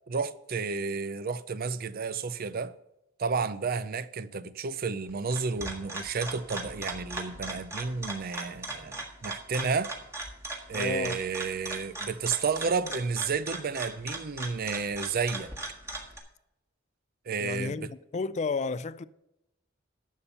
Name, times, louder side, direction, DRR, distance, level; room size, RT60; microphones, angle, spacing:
voice 1, 0.1-2.8 3.2-9.9 10.7-15.5 17.3-17.9, right 5 dB, 50° right, 0.5 m, -31 dB
sound 1, 5.1-16.2, right 2 dB, 15° right, 1.5 m, -39 dB
voice 2, 10.7-11.2 17.4-19.0, left 4 dB, 35° left, 0.4 m, -32 dB
11.0 x 7.1 x 5.5 m
head